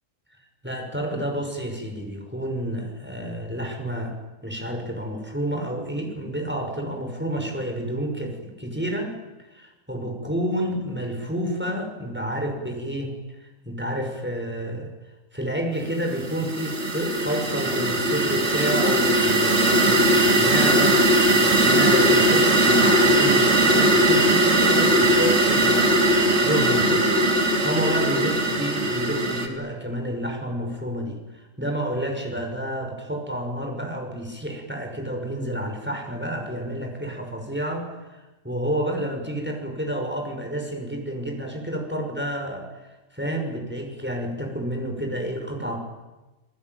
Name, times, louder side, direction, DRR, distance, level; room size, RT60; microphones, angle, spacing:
voice 1, 0.6-4.1 4.4-9.1 9.5-13.1 13.6-14.9 15.3-21.0 21.4-27.1 27.6-42.7 43.1-45.8, right 1 dB, 5° right, 3 dB, 5.7 m, -29 dB
sound 1, 16.1-29.5, right 1 dB, 50° right, 3.4 m, -19 dB
29.0 x 20.0 x 9.4 m, 1.1 s
omnidirectional pair, 1.5 m